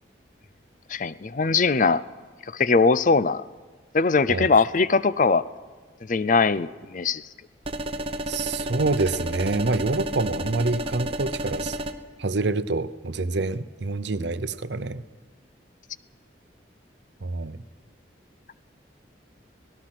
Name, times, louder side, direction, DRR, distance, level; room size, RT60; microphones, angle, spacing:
voice 1, 0.9-2.0 2.5-3.4 3.9-5.4 6.1-7.2, left 4 dB, 45° left, 16 dB, 0.5 m, -21 dB
sound 1, 7.6-11.9, right 1 dB, 30° right, 0.9 m, -31 dB
voice 2, 8.3-11.8 12.2-15.0 17.2-17.6, right 3 dB, 70° right, 14 dB, 0.7 m, -27 dB
25.5 x 18.0 x 6.0 m, 1.4 s
head